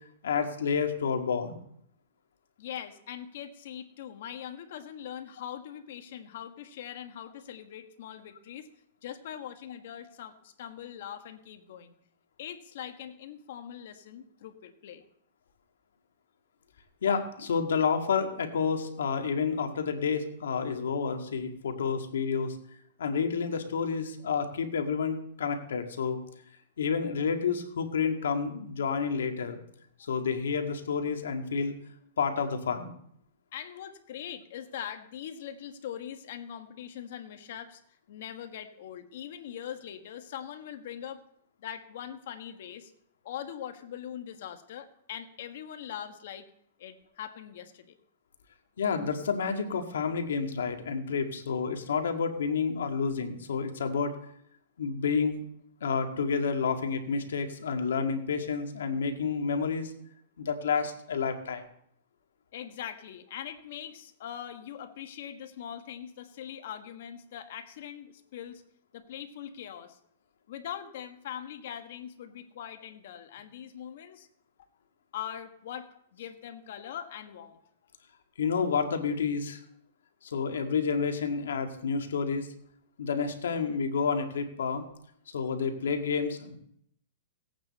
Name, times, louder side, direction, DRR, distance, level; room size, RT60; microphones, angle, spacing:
voice 1, 0.2-1.6 17.0-22.6 23.0-26.2 26.8-29.6 30.1-31.7 32.2-32.9 48.8-54.1 54.8-55.4 55.8-59.9 60.4-61.6 78.4-79.6 80.2-82.5 83.0-84.8 85.3-86.5, left 5 dB, 90° left, 5 dB, 1.8 m, -29 dB
voice 2, 2.6-8.7 9.0-11.9 12.4-15.0 33.5-37.8 38.1-41.2 41.6-42.9 43.2-46.4 46.8-48.0 62.5-68.6 68.9-70.0 70.5-74.3 75.1-77.6, left 9 dB, 60° left, 7 dB, 1.5 m, -42 dB
17.0 x 8.9 x 4.2 m, 0.68 s
hypercardioid pair, 150°, 0 cm